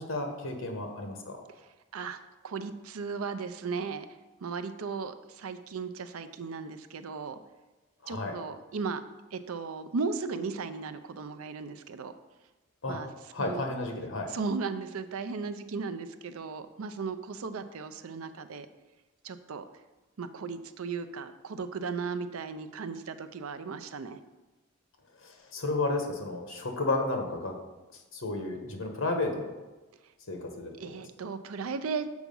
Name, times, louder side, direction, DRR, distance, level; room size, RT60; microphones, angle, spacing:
voice 1, 0.0-1.4 8.0-8.3 12.8-13.0 13.3-14.3 25.2-27.5 28.1-29.5 30.3-31.0, left 2 dB, 75° left, 3 dB, 1.2 m, -32 dB
voice 2, 1.9-4.1 4.4-7.4 8.1-9.0 9.3-12.1 12.9-13.1 13.4-13.7 14.3-18.7 19.2-19.6 20.2-24.2 30.8-32.2, right 5 dB, 85° right, 9 dB, 0.5 m, -36 dB
7.1 x 4.7 x 5.4 m, 1.1 s
head